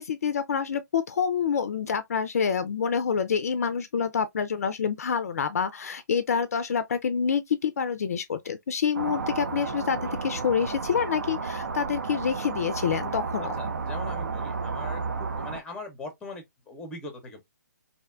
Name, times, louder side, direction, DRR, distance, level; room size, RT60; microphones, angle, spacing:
voice 1, 0.0-13.5, left 6 dB, 55° left, 0.4 m, -27 dB
sound 1, 8.9-15.6, right 4 dB, 70° right, 0.4 m, -32 dB
voice 2, 13.6-15.0 15.4-17.4, left 2 dB, 10° left, 0.6 m, -40 dB
2.6 x 2.1 x 2.3 m
figure-of-eight pair, 135°, 10 cm